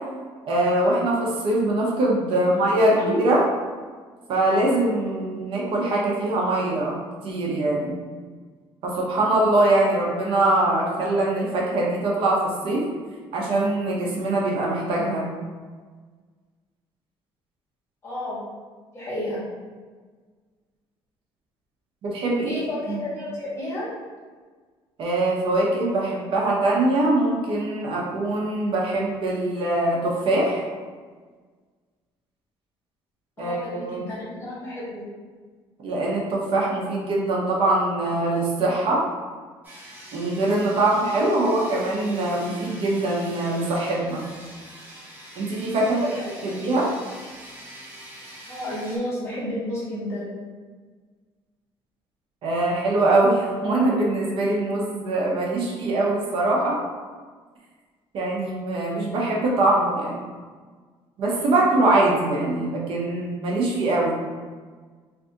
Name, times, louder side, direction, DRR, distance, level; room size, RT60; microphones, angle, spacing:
voice 1, 0.4-3.4 4.3-7.0 7.2-8.0 8.8-12.9 13.3-15.3 22.0-22.5 22.9-23.0 25.0-30.6 33.4-34.1 35.8-39.1 40.1-44.2 45.4-46.1 46.4-46.9 52.4-56.8 58.1-60.2 61.2-64.2, right 2 dB, 60° right, -3 dB, 0.7 m, -23 dB
voice 2, 2.9-3.3 18.0-18.4 18.9-19.4 22.4-23.9 33.4-35.0 45.8-46.5 48.5-50.3, left 1 dB, 25° left, -8 dB, 1.3 m, -31 dB
sound 1, 39.6-49.0, right 1 dB, 15° right, 1.1 m, -44 dB
2.6 x 2.4 x 3.5 m, 1.5 s
cardioid pair, 135°, 10 cm